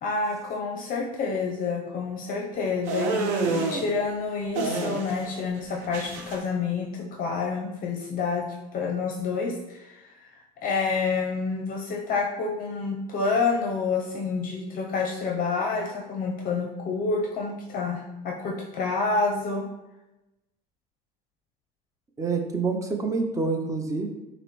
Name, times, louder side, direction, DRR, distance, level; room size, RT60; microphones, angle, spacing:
voice 1, 0.0-8.5 8.7-19.7, left 4 dB, 45° left, 1 dB, 0.6 m, -28 dB
sound 1, 2.9-3.8 4.6-5.3 5.6-6.4, right 3 dB, 70° right, 0.7 m, -28 dB
voice 2, 22.2-24.1, right 4 dB, 15° right, 3 dB, 0.6 m, -27 dB
5.7 x 2.1 x 3.0 m, 0.98 s
supercardioid pair, 105°, 19 cm